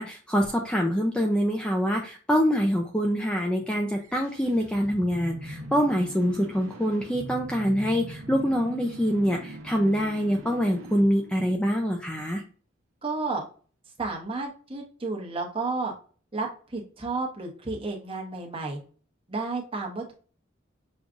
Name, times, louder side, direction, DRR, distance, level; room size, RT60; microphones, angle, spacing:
voice 1, 0.0-12.4, equal, 5° left, 1 dB, 0.4 m, -25 dB
sound 1, 3.9-12.0, right 1 dB, 75° right, 0.9 m, -42 dB
voice 2, 13.0-13.4 14.0-15.9 16.3-18.8 19.3-20.1, right 3 dB, 25° right, 0 dB, 1.0 m, -32 dB
6.2 x 2.4 x 2.5 m, 0.40 s
head